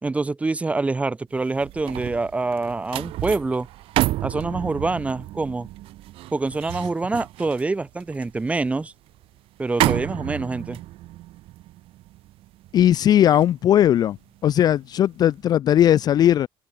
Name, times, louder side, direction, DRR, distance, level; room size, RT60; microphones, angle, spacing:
voice 1, 0.0-3.7 4.2-5.7 6.3-8.9 9.6-10.8, right 3 dB, 15° right, 1.2 m, -25 dB
sound 1, 1.4-14.7 15.1-15.4, right 16 dB, 75° right, 3.4 m, -31 dB
voice 2, 12.7-14.2 14.4-16.5, left 11 dB, 45° left, 0.4 m, -18 dB
cardioid pair, 145°, 9 cm